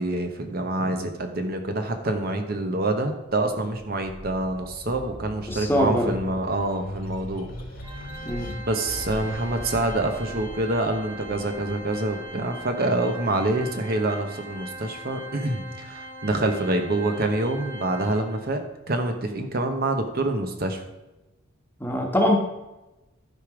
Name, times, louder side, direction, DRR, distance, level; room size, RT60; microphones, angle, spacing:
voice 1, 0.0-7.5 8.7-18.6 18.9-20.8, right 2 dB, 50° right, 6 dB, 1.0 m, -26 dB
sound 1, 3.7-14.1 14.6-15.7, equal, 50° left, 1.5 m, -41 dB
voice 2, 5.5-6.1 8.2-8.5 21.8-22.4, equal, 10° left, 1 dB, 1.3 m, -23 dB
Organ, 7.8-18.6, equal, 25° right, 2.3 m, -40 dB
12.0 x 5.1 x 4.9 m, 1.0 s
head